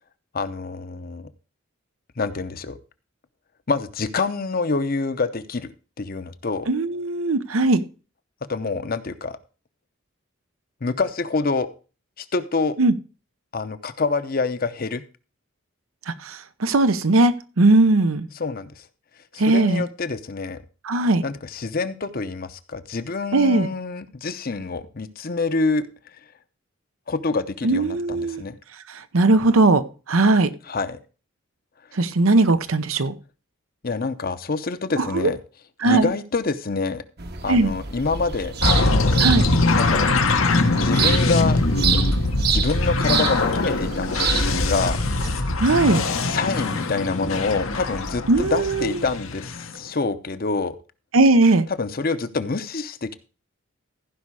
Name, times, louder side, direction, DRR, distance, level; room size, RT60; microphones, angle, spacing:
voice 1, 0.3-1.3 2.2-2.8 3.7-6.7 8.5-9.4 10.8-11.7 12.2-12.8 13.5-15.0 18.4-18.8 19.3-20.6 21.2-25.9 27.1-28.6 30.7-31.0 33.8-35.4 35.8-37.0 37.4-39.2 39.8-40.1 40.8-41.6 42.5-45.0 46.2-50.8 51.8-53.1, left 4 dB, 45° left, 11 dB, 0.7 m, -26 dB
voice 2, 6.7-7.8 12.8-12.9 16.1-18.3 19.4-19.9 20.8-21.2 23.3-23.7 27.6-28.4 28.9-30.5 31.9-33.1 35.0-35.3 35.8-36.1 37.5-37.7 39.2-39.4 45.6-46.0 48.3-49.0 51.1-51.7, right 2 dB, 85° right, 12 dB, 0.8 m, -19 dB
sound 1, 37.2-45.3, right 5 dB, 50° right, 1.0 m, -27 dB
sound 2, 38.6-49.7, left 2 dB, 85° left, 1.3 m, -22 dB
15.0 x 5.5 x 4.7 m, 0.35 s
head